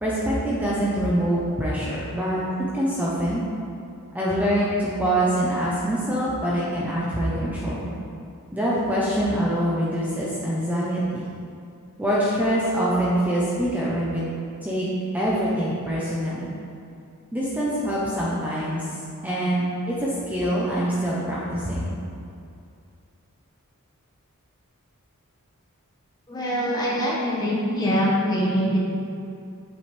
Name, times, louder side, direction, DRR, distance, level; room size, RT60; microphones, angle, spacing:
voice 1, 0.0-2.4 2.7-3.4 4.1-7.9 8.5-11.3 12.0-14.2 14.6-14.9 15.1-16.5 17.3-21.9, equal, 10° right, -7 dB, 1.0 m, -24 dB
voice 2, 26.3-28.8, equal, 20° left, -5 dB, 1.6 m, -23 dB
8.3 x 7.8 x 3.5 m, 2.5 s
head